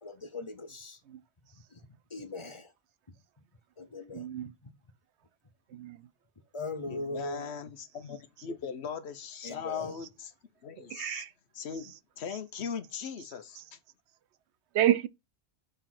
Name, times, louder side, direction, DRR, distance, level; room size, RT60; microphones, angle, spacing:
voice 1, 0.0-1.0 1.5-1.8 2.1-2.7 3.8-4.3 4.6-4.7 6.5-7.6 9.4-9.9, left 2 dB, 30° left, 0.9 m, -39 dB
voice 2, 4.1-4.5 5.7-6.1 10.9-11.3 14.7-15.1, right 12 dB, 85° right, 0.9 m, -29 dB
voice 3, 6.9-10.3 10.6-11.2 11.5-13.8, left 6 dB, 75° left, 1.1 m, -39 dB
6.8 x 3.8 x 5.9 m
omnidirectional pair, 1.1 m